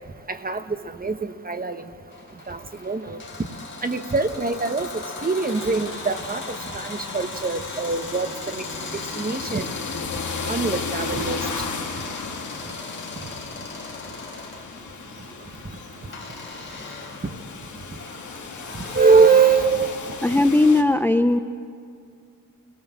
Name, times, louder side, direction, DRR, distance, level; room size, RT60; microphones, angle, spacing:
voice 1, 0.3-0.6 1.0-1.8 2.5-3.2 3.8-4.9 5.2-8.6 9.2-9.6 10.5-11.4 18.9-19.9, right 4 dB, 30° right, 9 dB, 1.2 m, -22 dB
sound 1, 2.1-14.7 16.1-19.6, left 3 dB, 35° left, 3.8 m, -38 dB
sound 2, 5.5-20.8, left 5 dB, 65° left, 2.0 m, -35 dB
voice 2, 20.2-21.4, left 2 dB, 5° left, 10 dB, 0.5 m, -18 dB
30.0 x 18.5 x 7.4 m, 2.3 s
wide cardioid pair, 110°, 32 cm